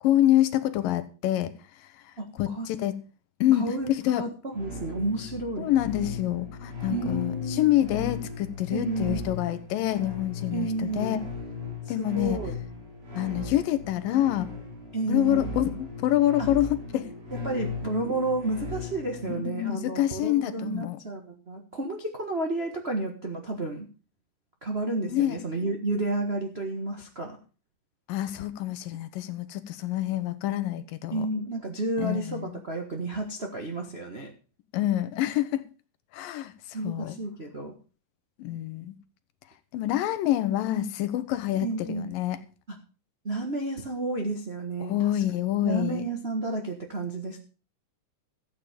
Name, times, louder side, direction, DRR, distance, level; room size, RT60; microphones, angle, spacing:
voice 1, 0.0-1.5 2.4-3.0 3.4-4.3 5.6-11.2 11.9-12.4 13.2-14.5 15.1-17.1 19.3-21.0 25.1-25.4 28.1-31.3 32.0-32.6 34.7-35.6 36.1-36.5 36.8-37.2 38.4-38.9 39.7-42.4 44.8-46.0, left 13 dB, 85° left, 2.6 m, -26 dB
voice 2, 2.2-2.7 3.5-5.7 6.9-7.7 8.7-9.2 10.5-11.2 11.8-12.6 14.9-15.5 16.4-16.5 17.3-23.9 24.6-27.4 31.1-34.3 36.7-37.7 41.6-42.1 42.7-42.8 43.2-45.2 45.6-47.4, right 2 dB, 70° right, 0.5 m, -31 dB
sound 1, 4.5-19.4, left 3 dB, 50° right, 4.5 m, -37 dB
13.5 x 8.6 x 5.2 m
omnidirectional pair, 4.0 m